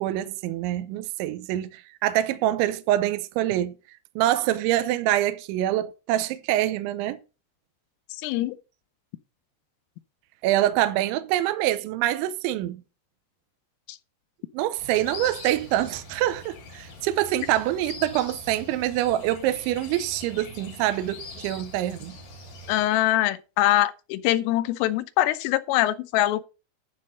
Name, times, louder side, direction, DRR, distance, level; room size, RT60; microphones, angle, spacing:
voice 1, 0.0-3.7 4.2-7.2 10.4-12.8 14.5-22.2, right 13 dB, 80° right, 2.9 m, -25 dB
voice 2, 8.2-8.6 13.9-14.0 22.7-26.4, left 15 dB, 85° left, 3.3 m, -23 dB
sound 1, 14.8-22.8, left 3 dB, 50° left, 4.9 m, -43 dB
11.5 x 4.2 x 6.5 m
omnidirectional pair, 5.8 m